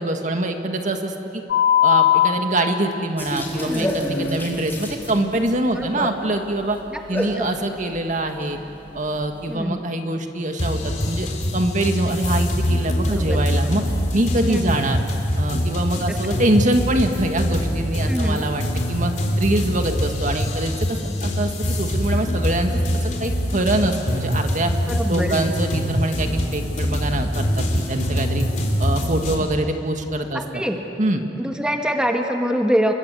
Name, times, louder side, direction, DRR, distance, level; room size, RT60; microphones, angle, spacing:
voice 1, 0.0-1.4 1.8-6.8 7.1-8.6 8.9-11.3 11.5-13.8 14.1-15.0 15.4-24.7 25.1-28.5 28.8-30.6 31.0-31.2, right 1 dB, 45° right, 5 dB, 1.9 m, -24 dB
sound 1, 1.5-2.3 5.1-5.2, left 11 dB, 65° left, 2.3 m, -16 dB
sound 2, 3.2-9.6, left 1 dB, 10° left, 4.1 m, -32 dB
voice 2, 3.6-4.0 5.7-6.1 6.9-7.7 9.5-9.8 13.1-13.4 14.4-14.8 16.1-16.2 18.1-18.4 24.9-25.4 30.3-30.8 31.4-32.9, equal, 5° right, 3 dB, 1.6 m, -25 dB
sound 3, 10.6-29.3, equal, 45° left, 3.8 m, -24 dB
28.5 x 23.0 x 8.4 m, 2.8 s
head